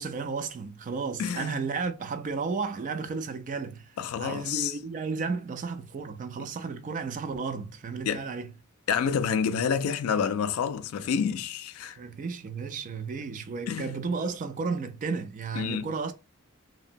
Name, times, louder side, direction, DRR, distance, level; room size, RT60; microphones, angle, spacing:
voice 1, 0.0-8.5 12.0-16.1, right 4 dB, 40° right, 0.3 m, -33 dB
voice 2, 1.2-1.6 4.0-4.7 8.1-8.3 8.9-12.0 13.7-13.9 15.5-15.9, left 7 dB, 90° left, 0.3 m, -28 dB
2.8 x 2.1 x 2.5 m
head